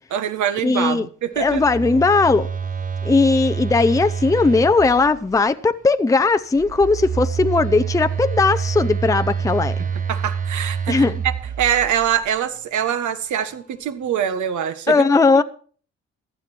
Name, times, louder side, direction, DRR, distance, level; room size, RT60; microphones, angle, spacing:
voice 1, 0.1-1.6 10.1-11.3 11.6-14.9 15.3-15.4, right 9 dB, 75° right, 1.6 m, -23 dB
voice 2, 0.6-1.1 1.4-2.5 3.0-9.8 10.9-11.2 14.9-15.4, left 3 dB, 10° left, 0.6 m, -18 dB
Telephone, 1.4-5.4 6.6-12.3, right 6 dB, 25° right, 0.8 m, -27 dB
15.5 x 11.5 x 4.5 m
cardioid pair, 90°, 30 cm